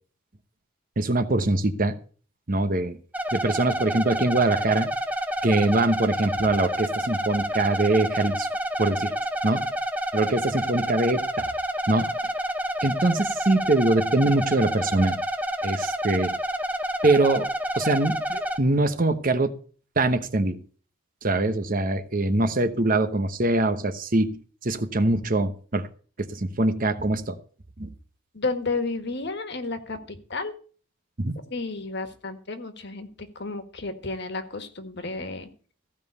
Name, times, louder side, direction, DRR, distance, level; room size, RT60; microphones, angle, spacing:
voice 1, 1.0-1.9 2.5-3.0 3.3-4.9 5.4-8.5 8.8-9.1 9.4-9.7 10.1-11.5 11.9-12.1 12.8-15.2 15.6-16.3 17.0-17.5 17.8-19.5 20.0-20.6 21.2-25.9 26.2-27.4 27.8-27.9 31.2-31.4, right 2 dB, 40° right, 9 dB, 1.0 m, -23 dB
sound 1, 3.1-18.6, equal, 5° right, 0.8 m, -29 dB
voice 2, 28.3-30.5 31.5-35.5, left 3 dB, 55° left, 8 dB, 1.6 m, -32 dB
15.5 x 5.4 x 8.1 m, 0.42 s
head